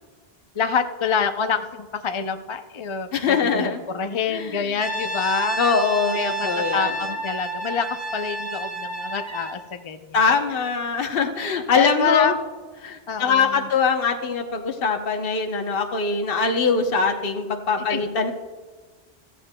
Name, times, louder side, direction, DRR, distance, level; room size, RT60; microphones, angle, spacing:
voice 1, 0.6-5.6 6.1-7.9 8.1-10.2 11.7-12.3 13.1-13.7 17.9-18.0, left 6 dB, 40° left, 7 dB, 0.5 m, -26 dB
voice 2, 3.1-3.8 4.3-4.8 5.6-6.9 10.1-12.4 12.8-18.3, left 5 dB, 65° left, 4 dB, 1.1 m, -22 dB
Brass instrument, 4.8-9.6, right 3 dB, 15° right, 1.0 m, -30 dB
15.0 x 14.5 x 2.2 m, 1.4 s
omnidirectional pair, 1.1 m